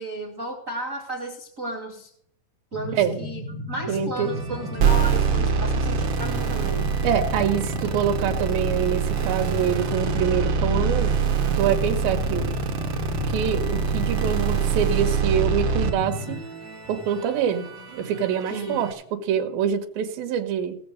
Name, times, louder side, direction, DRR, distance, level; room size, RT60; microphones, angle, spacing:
voice 1, 0.0-2.1 2.7-6.9 18.5-18.8, right 1 dB, 50° right, 0 dB, 0.9 m, -34 dB
sound 1, 2.7-16.4, left 2 dB, 60° left, 4.4 m, -33 dB
voice 2, 3.9-4.7 7.0-11.1 11.6-12.5 13.3-16.4 16.9-18.9 19.3-20.8, right 8 dB, 70° right, 4 dB, 3.1 m, -25 dB
sound 2, 4.1-18.9, right 2 dB, 15° right, 3.4 m, -42 dB
sound 3, 4.8-15.9, right 6 dB, 90° right, 1.3 m, -24 dB
18.5 x 7.0 x 6.5 m, 0.67 s
omnidirectional pair, 4.7 m